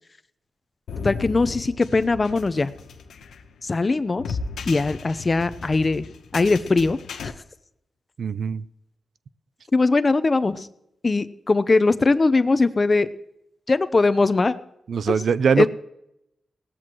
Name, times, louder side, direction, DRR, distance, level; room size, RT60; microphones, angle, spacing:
sound 1, 0.9-7.3, left 5 dB, 90° left, 0.9 m, -36 dB
voice 1, 1.0-2.7 3.6-4.4 4.7-6.1 6.3-7.3 9.7-10.7 11.0-13.1 13.7-14.5 15.6-15.7, left 3 dB, 35° left, 13 dB, 0.7 m, -20 dB
voice 2, 8.2-8.6 14.9-15.7, right 6 dB, 70° right, 16 dB, 0.5 m, -21 dB
18.0 x 14.0 x 3.1 m, 0.82 s
cardioid pair, 75°, 0 cm